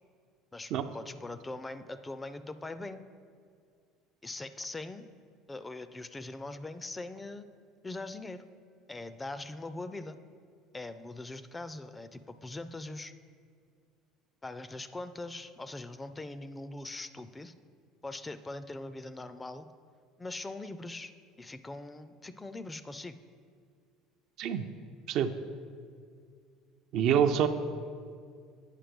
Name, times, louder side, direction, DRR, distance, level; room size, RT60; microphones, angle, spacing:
voice 1, 0.5-3.1 4.2-5.1 5.5-7.5 7.8-8.5 8.9-10.2 10.7-13.1 14.4-17.5 18.0-19.7 20.2-23.2, left 2 dB, 15° left, 12 dB, 0.4 m, -41 dB
voice 2, 26.9-27.5, right 8 dB, 65° right, 9 dB, 0.4 m, -26 dB
9.0 x 4.4 x 5.2 m, 2.2 s
supercardioid pair, 90°, 0 cm